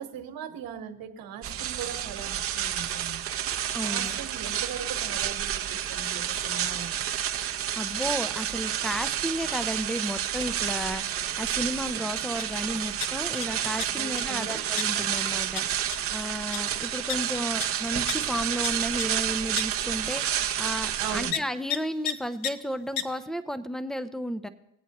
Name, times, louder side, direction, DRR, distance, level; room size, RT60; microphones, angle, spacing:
voice 1, 0.0-7.0 13.9-14.6 21.0-21.4, right 7 dB, 55° right, 6 dB, 1.4 m, -39 dB
sound 1, 1.4-21.3, right 10 dB, 35° right, 0.7 m, -30 dB
voice 2, 3.7-4.1 7.7-11.0 11.4-15.7 16.1-24.5, equal, ahead, 13 dB, 0.5 m, -33 dB
sound 2, 12.4-12.5 12.8-13.4 13.8-14.2 14.8-14.9 15.2-15.3 15.5-15.6 15.9-16.1 16.5-16.6 17.1-17.2 17.6-17.7 18.1-18.2 18.6-18.7 19.0-19.1 19.6-19.7 20.1-20.2 21.3-21.4 21.7-21.8 22.0-22.1 22.4-22.5 23.0-23.1, left 9 dB, 60° left, 0.8 m, -30 dB
20.0 x 8.2 x 3.0 m, 0.82 s
supercardioid pair, 80°, 41 cm